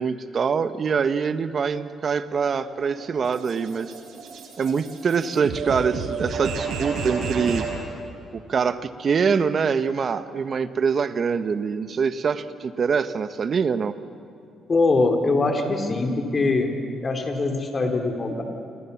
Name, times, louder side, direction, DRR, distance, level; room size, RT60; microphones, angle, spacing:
voice 1, 0.0-3.9 4.6-7.7 8.3-13.9, right 6 dB, 50° right, 11 dB, 1.3 m, -24 dB
sound 1, 2.3-7.8, right 4 dB, 75° right, 5.4 m, -32 dB
voice 2, 14.7-18.4, left 3 dB, 35° left, 4 dB, 4.3 m, -23 dB
29.0 x 26.5 x 7.3 m, 2.7 s
cardioid pair, 90°, 0 cm